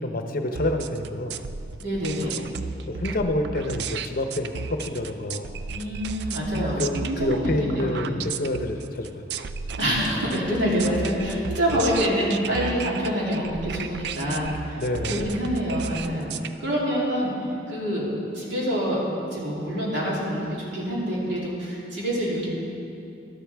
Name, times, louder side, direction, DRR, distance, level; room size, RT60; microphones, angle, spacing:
voice 1, 0.0-1.4 2.9-5.6 6.8-9.3 11.7-11.8 14.8-15.3, left 1 dB, 50° left, 5 dB, 0.8 m, -28 dB
sound 1, 0.6-16.5, right 5 dB, 65° right, 0.4 m, -34 dB
voice 2, 1.8-2.4 5.7-8.1 9.8-14.8 15.1-16.3 16.6-17.3 17.7-18.1 18.3-19.0 19.3-22.5, equal, 90° right, -6 dB, 3.1 m, -26 dB
12.5 x 12.0 x 3.5 m, 2.7 s
head